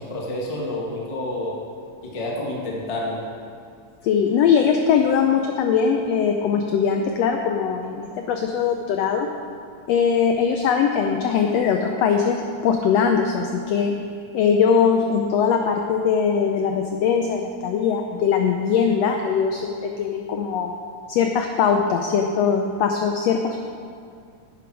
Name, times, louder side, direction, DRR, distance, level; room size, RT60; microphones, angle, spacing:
voice 1, 0.0-1.6 2.0-3.2, left 1 dB, 30° left, -3 dB, 0.5 m, -29 dB
voice 2, 4.0-9.3 9.9-13.9 14.3-20.8 21.1-23.6, left 6 dB, 85° left, 4 dB, 1.4 m, -21 dB
11.0 x 8.6 x 4.7 m, 2.3 s
omnidirectional pair, 3.6 m